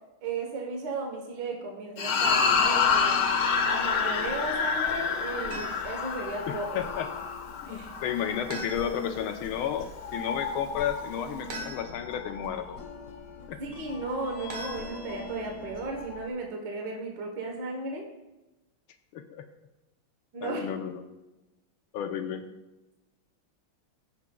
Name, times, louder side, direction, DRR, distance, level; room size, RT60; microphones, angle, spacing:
voice 1, 0.2-3.2 3.6-6.8 7.7-7.9 13.6-18.1 20.3-20.7, right 3 dB, 60° right, 1 dB, 1.7 m, -35 dB
sound 1, 2.0-8.5, left 5 dB, 70° left, 1.4 m, -27 dB
sound 2, 2.2-16.3, left 4 dB, 55° left, 1.0 m, -41 dB
sound 3, 5.5-6.0 8.5-9.2 11.5-12.2 14.5-15.4, right 2 dB, 90° right, 2.2 m, -41 dB
voice 2, 6.5-7.1 7.7-12.8 13.5-13.6 19.1-19.4 20.4-21.0 21.9-22.4, left 9 dB, 90° left, 7 dB, 1.6 m, -32 dB
15.0 x 7.3 x 2.3 m, 1.0 s
omnidirectional pair, 2.3 m